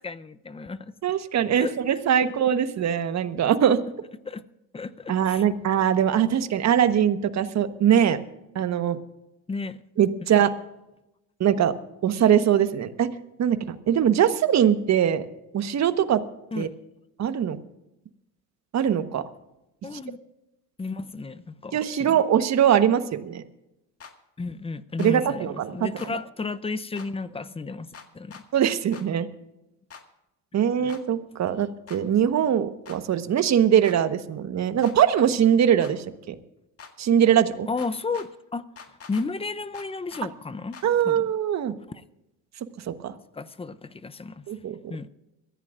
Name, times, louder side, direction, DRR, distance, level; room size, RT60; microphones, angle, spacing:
voice 1, 0.0-0.9 1.6-2.3 4.2-4.4 4.7-5.4 9.5-9.8 16.5-16.7 19.8-20.2 20.8-22.2 24.4-28.4 30.7-30.9 37.7-40.8 41.0-41.3 41.9-42.0 43.3-44.4 44.9-45.1, left 4 dB, 15° left, 0.7 m, -33 dB
voice 2, 1.0-3.8 5.1-8.2 8.5-9.0 10.0-10.5 11.4-11.7 12.0-13.1 13.4-15.2 15.5-16.2 16.6-16.7 17.2-17.6 18.7-19.2 21.7-23.4 25.0-25.9 28.5-29.3 30.5-36.3 37.0-37.7 40.8-41.7 42.9-43.1 44.5-44.9, right 9 dB, 45° right, 1.3 m, -22 dB
sound 1, 24.0-24.1 25.0-25.1 26.0-26.1 26.9-27.1 27.9-28.4 28.9-29.1 29.9-30.0 30.9-31.0 31.9-32.0 32.8-33.0 33.8-34.0 34.8-35.0 35.8-35.9 36.8-36.9 37.8-38.3 38.8-39.3 39.7-40.2 40.7-40.9, left 6 dB, 40° left, 1.9 m, -44 dB
23.0 x 15.0 x 2.5 m
supercardioid pair, 85°, 38 cm